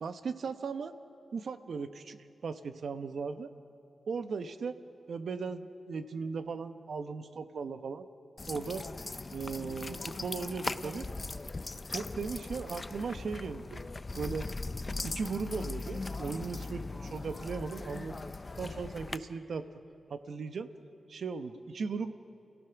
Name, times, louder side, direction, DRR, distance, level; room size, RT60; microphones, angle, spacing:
voice 1, 0.0-0.9 1.3-3.5 4.1-4.8 5.1-8.1 8.5-8.9 9.3-11.1 11.9-13.8 14.1-14.5 15.0-18.2 18.6-19.8 20.1-20.7 21.1-22.1, right 5 dB, 70° right, 9 dB, 1.0 m, -37 dB
sound 1, 8.4-19.2, left 3 dB, 30° left, 0.6 m, -39 dB
29.5 x 16.0 x 5.9 m, 2.8 s
cardioid pair, 85°, 0 cm